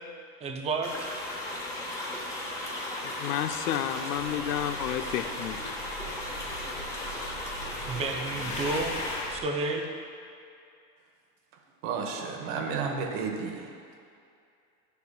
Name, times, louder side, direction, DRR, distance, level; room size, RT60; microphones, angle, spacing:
voice 1, 0.4-0.9 7.9-9.0 9.3-9.9, right 3 dB, 15° right, 3 dB, 0.4 m, -31 dB
sound 1, 0.8-9.2, left 1 dB, 5° left, 1.2 m, -36 dB
voice 2, 3.0-5.7, left 10 dB, 85° left, 9 dB, 0.6 m, -31 dB
sound 2, 4.1-9.4, left 1 dB, 70° left, 1.4 m, -40 dB
voice 3, 11.8-13.7, right 5 dB, 65° right, 3 dB, 1.1 m, -32 dB
9.7 x 7.0 x 2.3 m, 2.4 s
supercardioid pair, 120°, 45 cm